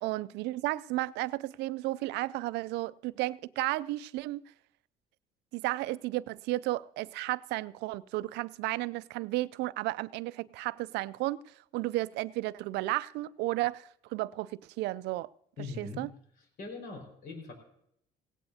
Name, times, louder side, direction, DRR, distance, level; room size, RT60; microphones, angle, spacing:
voice 1, 0.0-4.4 5.5-11.4 11.7-15.3 15.8-16.1, right 18 dB, 85° right, 0.4 m, -33 dB
voice 2, 15.6-16.0 16.4-17.5, left 3 dB, 70° left, 4.9 m, -41 dB
17.5 x 17.0 x 2.8 m
cardioid pair, 110°, 17 cm